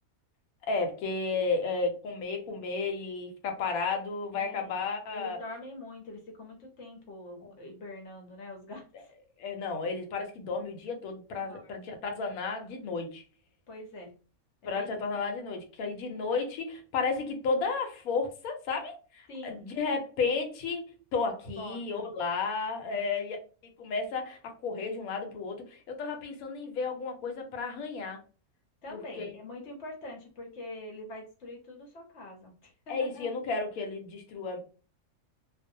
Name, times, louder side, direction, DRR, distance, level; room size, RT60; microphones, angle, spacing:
voice 1, 0.7-5.4 7.4-7.5 9.4-13.2 14.7-23.4 23.8-28.2 28.9-29.3 32.9-34.6, left 4 dB, 75° left, 1.1 m, -33 dB
voice 2, 4.3-4.8 5.1-9.1 11.4-11.9 13.7-14.1 14.6-14.9 19.3-19.7 21.6-22.1 22.8-23.1 28.8-33.3, left 1 dB, 60° left, 0.9 m, -44 dB
2.5 x 2.1 x 2.6 m
omnidirectional pair, 1.5 m